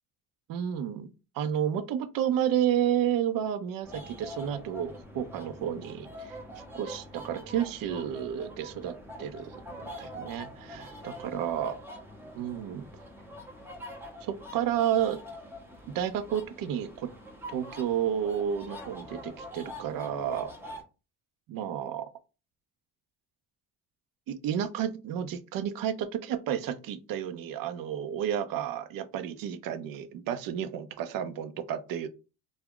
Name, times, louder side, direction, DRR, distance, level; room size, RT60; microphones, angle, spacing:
voice 1, 0.5-1.1 1.3-6.4 6.7-11.7 12.3-12.9 14.2-15.2 15.9-17.1 17.5-20.5 21.5-22.1 24.3-32.1, right 9 dB, 55° right, 0.5 m, -31 dB
sound 1, 3.8-20.8, equal, 5° right, 0.7 m, -44 dB
2.3 x 2.0 x 3.6 m
supercardioid pair, 85°, 42 cm